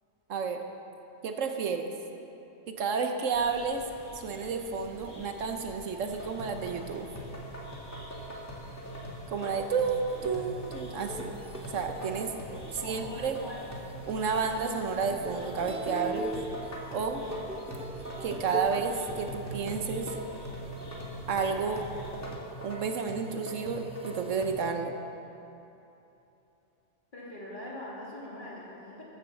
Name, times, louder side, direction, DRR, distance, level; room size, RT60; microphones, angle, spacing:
voice 1, 0.3-0.6 1.2-1.9 2.7-3.8 4.1-7.1 9.3-11.4 11.7-12.3 12.7-13.4 14.1-16.3 16.9-17.2 18.2-20.1 21.3-21.9 22.6-24.9, right 5 dB, 80° right, 5 dB, 1.3 m, -31 dB
sound 1, 3.3-22.3, left 1 dB, 85° left, 3.1 m, -50 dB
sound 2, 6.0-24.5, right 1 dB, 15° left, 1.8 m, -42 dB
sound 3, 10.1-21.4 21.9-22.0 22.4-24.6, right 1 dB, 5° right, 0.5 m, -43 dB
voice 2, 12.8-13.6 16.9-17.5 27.1-29.0, left 1 dB, 40° left, -6 dB, 2.9 m, -43 dB
13.5 x 7.4 x 7.2 m, 3.0 s
omnidirectional pair, 1.3 m